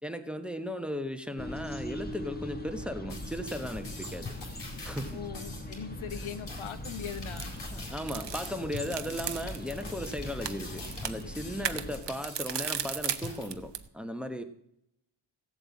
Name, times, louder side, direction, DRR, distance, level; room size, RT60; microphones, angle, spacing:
voice 1, 0.0-4.4 4.8-5.2 7.7-14.4, equal, ahead, 8 dB, 1.2 m, -36 dB
sound 1, 1.4-12.0, left 1 dB, 20° left, 1.5 m, -41 dB
sound 2, 3.1-13.5, left 3 dB, 60° left, 4.1 m, -45 dB
voice 2, 5.1-7.5 11.6-11.8, left 8 dB, 90° left, 12 dB, 1.1 m, -40 dB
sound 3, 6.9-13.9, right 8 dB, 60° right, 1.0 m, -38 dB
15.5 x 8.0 x 8.4 m, 0.78 s
wide cardioid pair, 105°, 47 cm